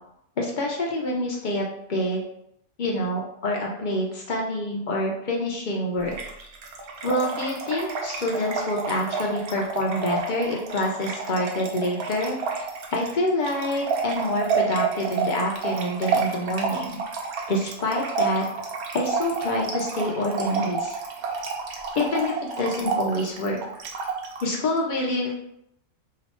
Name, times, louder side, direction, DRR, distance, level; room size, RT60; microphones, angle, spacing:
voice 1, 0.4-2.2 2.8-6.2 7.0-12.4 12.9-17.0 17.5-18.5 18.9-21.0 21.7-23.6 24.4-25.4, left 1 dB, 55° left, -2 dB, 0.5 m, -27 dB
Trickle dribble / Fill (with liquid), 6.1-24.5, right 5 dB, 85° right, 1.1 m, -30 dB
2.9 x 2.2 x 4.1 m, 0.77 s
omnidirectional pair, 1.5 m